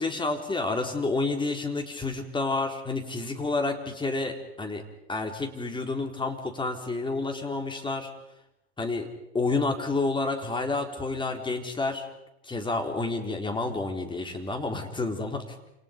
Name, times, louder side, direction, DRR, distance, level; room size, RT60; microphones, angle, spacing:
voice 1, 0.0-4.8 5.1-8.1 8.8-9.1 9.3-12.1 12.4-15.4, left 3 dB, 15° left, 4 dB, 4.1 m, -29 dB
29.0 x 28.5 x 5.4 m, 0.87 s
hypercardioid pair, 85°, 33 cm